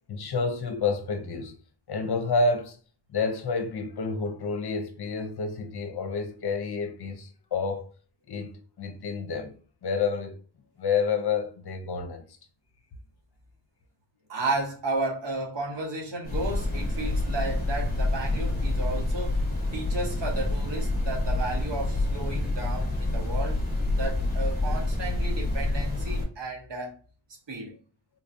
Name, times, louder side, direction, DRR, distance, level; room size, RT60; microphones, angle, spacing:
voice 1, 0.1-1.5 1.9-2.8 3.1-7.9 8.3-8.5 8.8-9.5 9.8-10.4 10.8-12.2, left 4 dB, 60° left, 0.7 m, -29 dB
voice 2, 14.3-19.3 19.7-23.6 24.0-26.9 27.5-27.8, right 2 dB, 70° right, 1.3 m, -33 dB
sound 1, 16.2-26.2, left 2 dB, 20° left, 1.1 m, -27 dB
3.9 x 2.7 x 2.5 m
wide cardioid pair, 135°, 44 cm